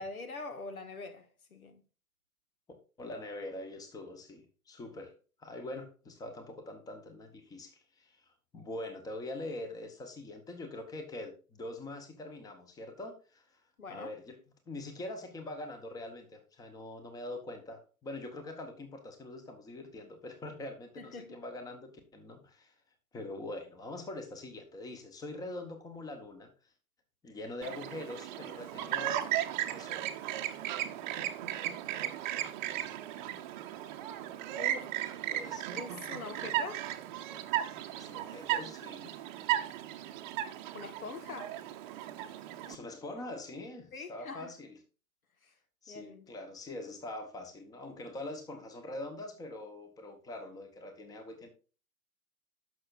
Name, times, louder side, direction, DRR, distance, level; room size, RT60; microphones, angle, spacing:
voice 1, 0.0-1.8 13.8-14.1 21.0-21.3 34.6-35.0 35.7-36.9 40.7-41.6 43.9-44.5 45.9-46.3, left 3 dB, 70° left, 1.5 m, -43 dB
voice 2, 3.0-5.1 5.4-13.6 13.9-14.4 14.7-22.7 23.1-26.5 27.2-29.4 29.7-30.0 35.3-35.7 38.0-39.1 42.6-44.8 45.8-51.5, left 2 dB, 10° left, 1.1 m, -43 dB
Chirp tweet, 27.6-42.8, right 12 dB, 35° right, 0.8 m, -36 dB
12.5 x 6.1 x 2.5 m
figure-of-eight pair, 110°, 44 cm